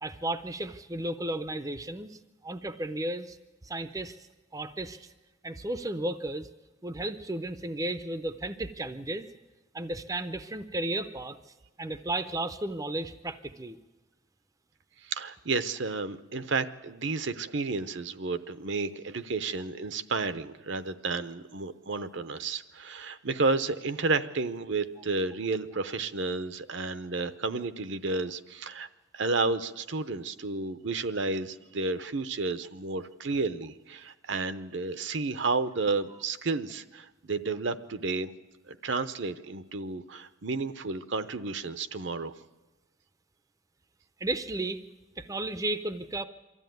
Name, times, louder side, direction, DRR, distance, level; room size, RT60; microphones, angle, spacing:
voice 1, 0.0-3.4 3.6-4.2 4.5-5.0 5.4-6.5 6.8-9.3 9.7-11.4 11.8-13.8 44.2-44.8 45.2-46.2, right 1 dB, 15° right, 10 dB, 0.6 m, -34 dB
voice 2, 15.0-28.9 29.1-38.3 38.7-42.3, right 3 dB, 60° right, 12 dB, 0.8 m, -31 dB
23.5 x 13.5 x 9.3 m, 1.2 s
head